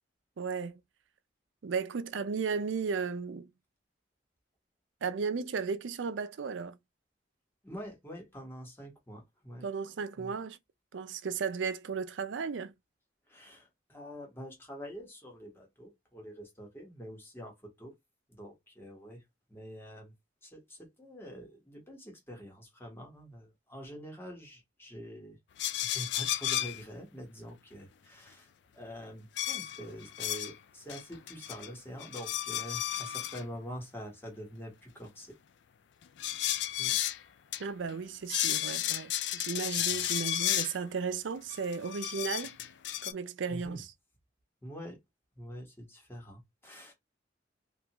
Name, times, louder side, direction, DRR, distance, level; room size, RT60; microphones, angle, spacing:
voice 1, 0.4-0.8 1.6-3.5 5.0-6.8 9.6-10.6 10.9-12.7 37.6-42.6 43.0-43.9, right 5 dB, 90° right, 0.5 m, -35 dB
voice 2, 7.6-9.7 10.2-10.3 13.3-17.9 18.3-19.2 19.5-20.1 20.4-25.4 25.8-28.5 28.7-35.4 36.8-37.0 39.9-40.0 43.5-43.8 44.6-45.0 45.4-46.9, equal, 15° left, 1.2 m, -46 dB
sound 1, 25.6-26.8 29.4-30.5 30.9-31.7 32.0-33.4 36.2-37.2 37.5-37.6 37.9-38.0 38.3-40.7 41.5-43.1, left 12 dB, 65° left, 0.3 m, -33 dB
3.3 x 2.5 x 2.9 m
head